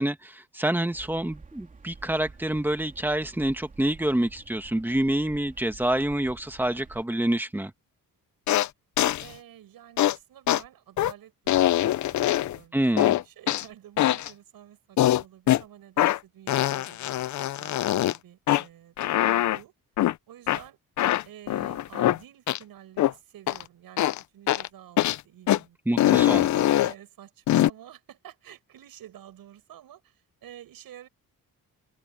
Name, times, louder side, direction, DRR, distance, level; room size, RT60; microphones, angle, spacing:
voice 1, 0.0-7.7 12.7-13.1 25.9-26.4, right 1 dB, 5° right, 1.3 m, -27 dB
sound 1, 0.9-7.0, right 4 dB, 20° right, 3.0 m, -49 dB
sound 2, 8.5-8.7 9.0-9.2 10.0-10.1 10.5-10.6 11.0-11.1 11.5-12.6 13.0-13.6 14.0-14.3 15.0-15.6 16.0-16.2 16.5-18.2 18.5-18.6 19.0-19.6 20.0-20.1 20.5-20.6 21.0-22.2 22.5-22.6 23.0-23.1 23.5-23.6 24.0-24.2 24.5-24.7 25.0-25.2 25.5-25.6 26.0-26.9 27.5-27.7, left 13 dB, 55° left, 0.5 m, -23 dB
voice 2, 9.2-19.7 20.3-20.8 21.2-24.1 24.3-31.1, right 11 dB, 75° right, 7.2 m, -49 dB
wide cardioid pair, 180°, 35 cm